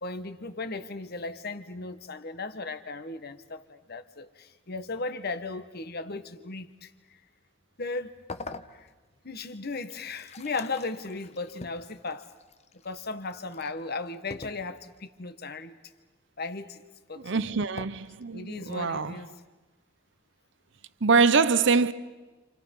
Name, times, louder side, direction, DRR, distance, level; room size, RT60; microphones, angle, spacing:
voice 1, 0.0-6.9 7.8-8.1 8.7-8.9 9.2-12.3 12.8-15.8 16.4-16.8 17.1-17.4 18.3-19.3, left 3 dB, 55° left, 1.5 m, -36 dB
sound 1, 8.3-9.2 9.7-13.8 14.3-15.0 17.8-17.9, left 3 dB, 35° left, 1.0 m, -44 dB
voice 2, 17.2-19.2 21.0-21.9, right 4 dB, 65° right, 0.8 m, -24 dB
29.0 x 28.5 x 5.5 m
head